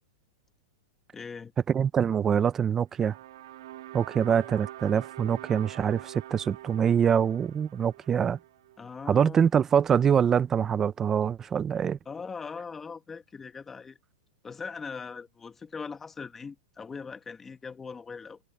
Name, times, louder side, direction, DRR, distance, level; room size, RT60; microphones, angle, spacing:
voice 1, 1.1-1.5 8.8-9.5 12.0-14.0 14.4-18.4, left 5 dB, 10° left, 1.6 m, -40 dB
voice 2, 1.7-3.2 3.9-8.4 9.1-12.0, right 8 dB, 15° right, 0.5 m, -24 dB
sound 1, 2.9-9.2, right 14 dB, 65° right, 2.4 m, -45 dB
supercardioid pair, 160°, 2 cm